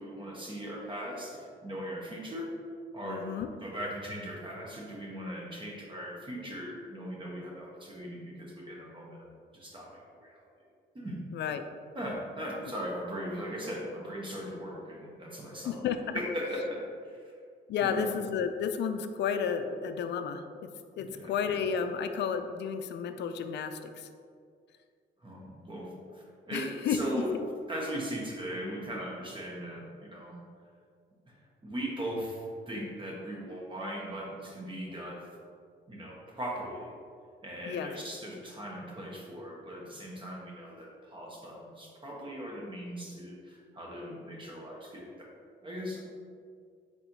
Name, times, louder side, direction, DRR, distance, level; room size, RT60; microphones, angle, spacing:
voice 1, 0.0-2.5 2.9-3.3 3.6-9.3 9.5-10.5 10.9-11.2 11.9-15.8 16.1-17.3 17.8-18.2 21.0-21.3 25.2-27.3 27.7-30.4 31.3-35.3 35.9-36.9 37.4-45.3 45.6-46.0, equal, 25° right, -3 dB, 1.1 m, -39 dB
voice 2, 3.0-3.5 11.3-11.6 15.6-16.0 17.7-20.7 21.0-24.1 26.5-27.2 37.7-37.9, left 7 dB, 60° left, 8 dB, 0.4 m, -32 dB
4.3 x 4.0 x 2.8 m, 2.2 s
cardioid pair, 90°, 20 cm